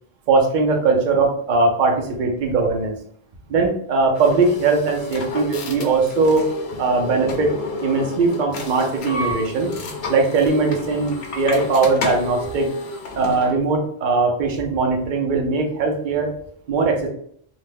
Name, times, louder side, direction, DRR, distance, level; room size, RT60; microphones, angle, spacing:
voice 1, 0.3-3.0 3.5-6.5 6.8-7.5 7.8-9.7 10.1-12.7 13.1-16.3 16.7-17.1, right 3 dB, 55° right, 2 dB, 0.7 m, -20 dB
sound 1, 4.1-13.6, left 2 dB, 85° left, 0.8 m, -31 dB
2.5 x 2.1 x 3.3 m, 0.63 s
omnidirectional pair, 1.0 m